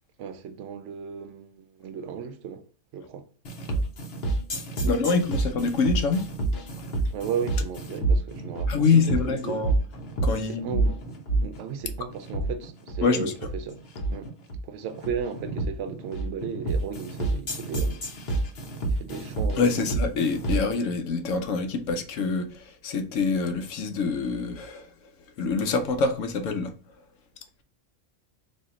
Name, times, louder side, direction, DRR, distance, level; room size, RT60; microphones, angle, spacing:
voice 1, 0.2-2.6 2.9-3.3 4.8-5.2 7.1-9.6 10.4-11.0 11.4-13.8 14.1-14.3 14.6-18.0 18.8-20.0, right 7 dB, 70° right, 0.9 m, -35 dB
sound 1, 3.4-20.7, right 2 dB, 55° left, 1.1 m, -28 dB
voice 2, 4.7-6.3 8.7-9.7 10.2-10.8 13.0-13.3 19.6-24.9 25.4-26.7, left 4 dB, 80° left, 1.1 m, -25 dB
4.3 x 2.8 x 3.7 m
omnidirectional pair, 1.3 m